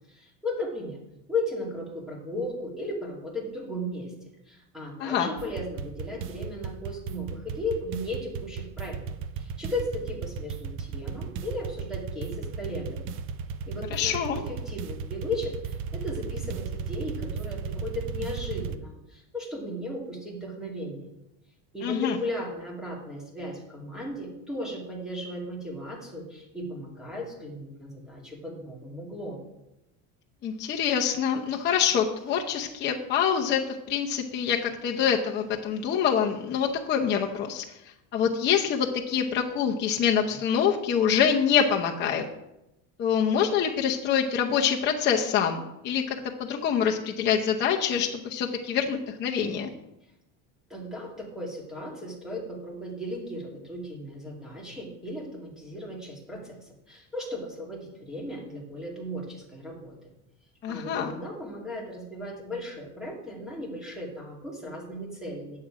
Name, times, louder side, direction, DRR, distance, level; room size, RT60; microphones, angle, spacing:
voice 1, 0.1-1.0 1.3-4.1 4.5-9.0 9.4-13.1 13.7-21.1 21.7-29.4 50.7-56.6 56.9-60.1 60.7-65.6, left 1 dB, ahead, -3 dB, 2.3 m, -36 dB
sound 1, 5.4-18.8, right 6 dB, 35° right, 0.4 m, -35 dB
voice 2, 13.9-14.4 21.8-22.2 30.4-37.6 38.1-42.2 43.0-46.2 46.5-49.7 60.6-61.1, left 8 dB, 30° left, 0 dB, 0.8 m, -25 dB
9.9 x 7.6 x 4.9 m, 0.87 s
cardioid pair, 165°, 38 cm